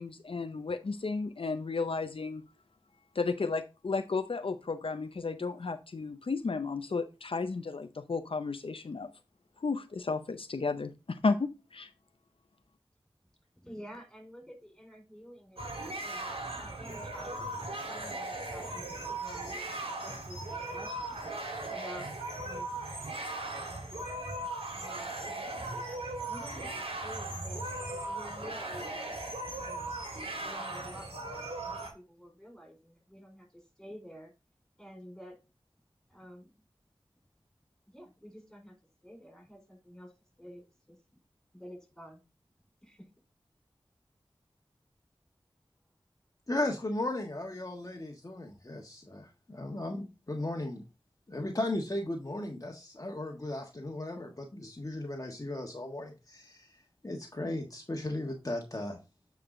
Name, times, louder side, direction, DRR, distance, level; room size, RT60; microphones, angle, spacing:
voice 1, 0.0-2.4 3.1-9.1 9.6-11.9, left 4 dB, 70° left, 0.6 m, -33 dB
voice 2, 13.6-17.6 17.9-21.2 21.7-22.8 24.6-30.0 30.4-34.3 34.8-35.4 36.1-36.7 37.9-38.7 39.0-40.1 40.4-41.0 41.5-42.2 42.8-43.1, equal, 5° left, 4.3 m, -50 dB
sound 1, 15.6-31.9, right 2 dB, 80° right, 2.8 m, -38 dB
voice 3, 46.5-50.8 51.3-59.0, left 1 dB, 35° left, 1.4 m, -36 dB
8.8 x 4.8 x 3.7 m
wide cardioid pair, 65°, 10 cm